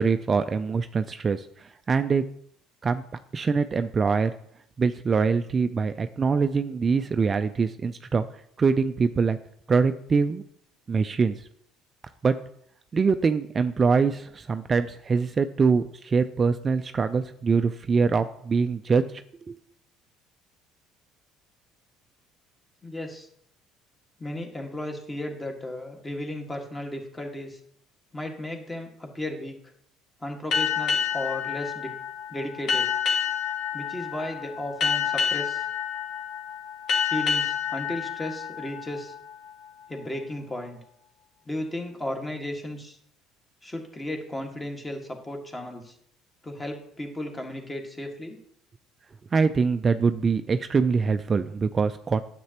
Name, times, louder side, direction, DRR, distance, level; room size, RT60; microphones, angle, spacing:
voice 1, 0.0-2.2 2.8-3.0 3.3-4.3 4.8-8.2 8.6-9.4 9.7-10.4 10.9-11.5 12.2-12.3 12.9-19.2 19.5-19.6 49.3-52.2, right 5 dB, 35° right, 9 dB, 0.4 m, -24 dB
voice 2, 22.8-23.3 24.2-27.6 28.1-29.6 30.2-31.9 32.3-32.9 33.7-35.7 37.0-39.1 39.9-40.8 41.4-43.0 43.6-45.9 46.4-48.4, left 1 dB, 20° left, 2 dB, 1.7 m, -34 dB
sound 1, 30.5-39.7, left 7 dB, 60° left, 1.5 m, -28 dB
9.4 x 7.5 x 2.9 m, 0.68 s
supercardioid pair, 85°, 0 cm